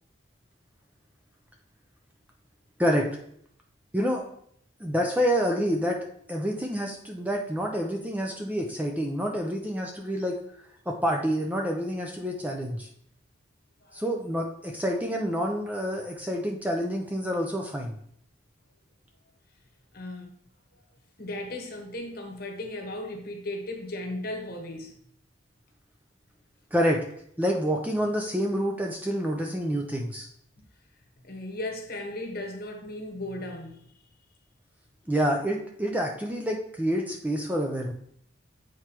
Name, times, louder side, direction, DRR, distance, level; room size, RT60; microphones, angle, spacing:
voice 1, 4.8-6.0 6.3-10.4 10.9-12.9 13.9-18.0 26.7-27.0 27.4-30.3 35.1-37.9, equal, 10° right, 0.5 m, -28 dB
voice 2, 19.9-20.3 21.2-24.9 31.2-33.9, left 1 dB, 50° left, 1.1 m, -36 dB
7.9 x 4.5 x 2.9 m
head